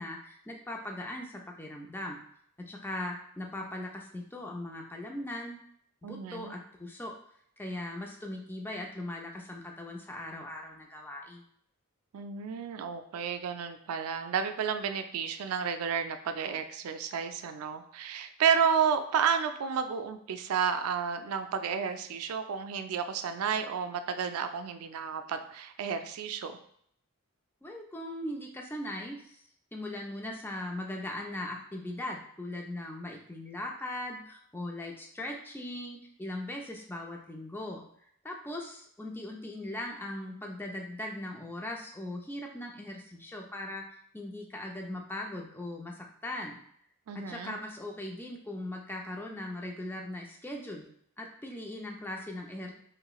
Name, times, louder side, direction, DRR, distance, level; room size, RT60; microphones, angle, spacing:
voice 1, 0.0-2.2 2.6-5.6 6.0-7.1 7.6-11.4 27.6-29.4 29.7-37.8 38.2-43.8 44.1-46.6 47.1-50.9 51.2-52.7, left 1 dB, 10° left, 1 dB, 0.4 m, -39 dB
voice 2, 6.0-6.5 12.1-26.6 47.1-47.6, right 7 dB, 75° right, 9 dB, 0.3 m, -31 dB
3.0 x 2.9 x 2.3 m, 0.66 s
head